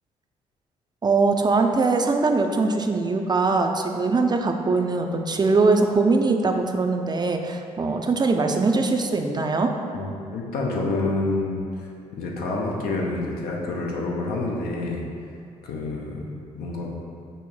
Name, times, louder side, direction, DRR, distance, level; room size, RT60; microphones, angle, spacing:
voice 1, 1.0-9.7, right 3 dB, 25° right, 4 dB, 0.5 m, -22 dB
voice 2, 9.9-15.0 15.6-16.9, left 2 dB, 65° left, -2 dB, 0.8 m, -28 dB
5.4 x 2.0 x 4.7 m, 2.4 s
hypercardioid pair, 40°, 17 cm